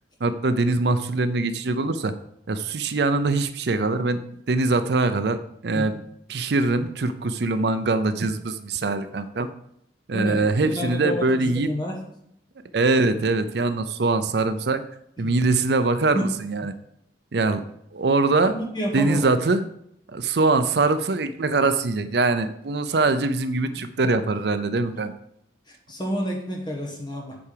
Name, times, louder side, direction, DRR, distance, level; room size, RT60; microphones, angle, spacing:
voice 1, 0.2-2.1 2.5-4.2 4.5-5.4 5.6-5.9 6.3-9.5 10.1-11.7 12.7-14.8 15.2-16.7 17.3-17.6 17.9-18.5 18.9-19.6 20.1-25.1, right 3 dB, 65° right, 10 dB, 0.5 m, -23 dB
voice 2, 10.1-10.4 10.7-11.9 16.1-16.3 18.4-19.3 23.8-23.9 25.7-27.4, equal, 25° left, 0 dB, 1.3 m, -29 dB
8.5 x 4.8 x 6.7 m, 0.72 s
head